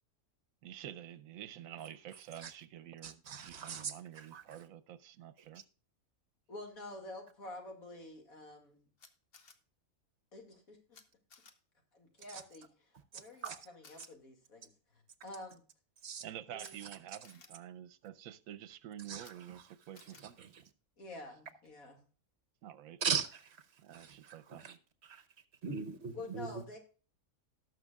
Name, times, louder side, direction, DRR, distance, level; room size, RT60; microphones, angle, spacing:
voice 1, 0.6-5.6 16.2-20.6 22.6-23.0 23.8-24.8, right 11 dB, 75° right, 1.1 m, -49 dB
voice 2, 3.0-4.4 12.3-12.4 13.4-13.6 16.0-16.2 19.1-19.6 20.2-20.6 23.0-23.6 23.9-24.8 25.0-25.2 25.6-26.6, right 6 dB, 55° right, 1.1 m, -40 dB
voice 3, 6.5-8.9 10.3-11.0 11.9-15.6 16.5-16.8 21.0-22.0 26.1-26.8, left 2 dB, 75° left, 2.6 m, -49 dB
Camera, 9.0-9.5 10.9-11.0 11.3-11.5 13.4-13.5 13.8-14.1 16.6-16.7 17.2-17.5 19.2-19.3 19.9-20.2, left 5 dB, 45° left, 1.1 m, -58 dB
18.5 x 6.4 x 2.3 m
omnidirectional pair, 1.5 m